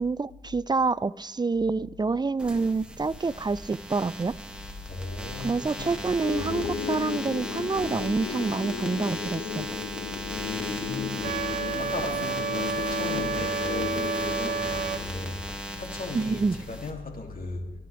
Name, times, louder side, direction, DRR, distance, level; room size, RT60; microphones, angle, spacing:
voice 1, 0.0-4.3 5.4-9.7 16.1-16.5, right 4 dB, 25° right, 0.4 m, -27 dB
sound 1, 2.4-16.9, equal, 5° right, 2.3 m, -37 dB
voice 2, 4.9-6.0 6.3-6.7 10.3-15.4 15.7-17.7, left 3 dB, 55° left, 2.7 m, -37 dB
sound 2, 6.2-15.2, left 7 dB, 75° left, 1.1 m, -35 dB
Wind instrument woodwind instrument, 11.2-15.0, right 6 dB, 55° right, 1.0 m, -31 dB
24.0 x 11.5 x 3.5 m
supercardioid pair, 50°, 18 cm